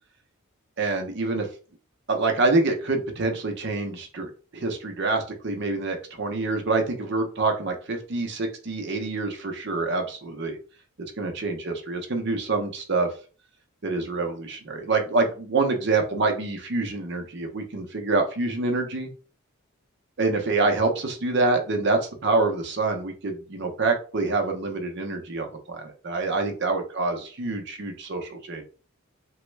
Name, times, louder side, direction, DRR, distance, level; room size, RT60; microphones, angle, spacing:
voice 1, 0.8-1.5 2.1-10.6 11.2-13.1 13.8-19.1 20.2-28.6, right 3 dB, 55° right, 4 dB, 0.6 m, -26 dB
3.0 x 2.2 x 3.2 m, 0.37 s
head